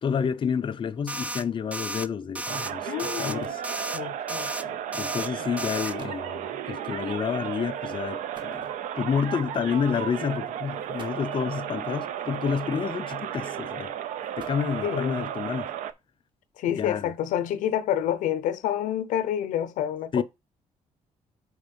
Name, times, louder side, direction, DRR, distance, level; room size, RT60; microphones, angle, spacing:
voice 1, 0.0-3.6 4.9-13.9 14.4-15.7 16.7-17.1 20.1-20.2, left 6 dB, 40° left, 0.5 m, -29 dB
sound 1, 1.1-1.4 1.7-2.1 2.3-2.7 3.0-3.3 3.6-4.0 4.3-4.6 4.9-5.3 5.6-5.9, right 1 dB, 10° right, 0.4 m, -33 dB
sound 2, 2.5-15.9, right 10 dB, 80° right, 0.5 m, -34 dB
voice 2, 2.9-3.6 3.9-4.8 5.4-5.5 14.8-15.3 16.6-20.2, left 10 dB, 90° left, 0.6 m, -28 dB
sound 3, 3.4-3.8 4.8-5.0 5.6-5.7 6.0-6.3 8.3-9.2 10.1-10.3 10.8-11.5 12.7-13.2 14.0-15.1, right 3 dB, 35° right, 1.2 m, -50 dB
4.9 x 4.3 x 5.2 m
cardioid pair, 95°, 13 cm